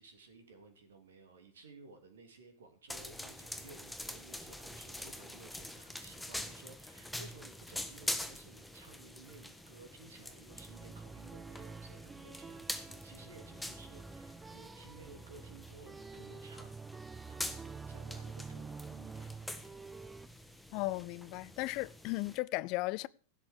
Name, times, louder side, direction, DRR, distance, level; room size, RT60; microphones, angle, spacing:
voice 1, 0.0-19.3, right 3 dB, 65° right, 2.9 m, -56 dB
sound 1, 2.9-22.4, left 1 dB, 5° left, 1.5 m, -45 dB
sound 2, 10.5-20.3, right 5 dB, 15° right, 0.7 m, -48 dB
voice 2, 20.7-23.1, left 20 dB, 40° left, 0.5 m, -36 dB
16.0 x 8.0 x 6.7 m
figure-of-eight pair, 90°, 0 cm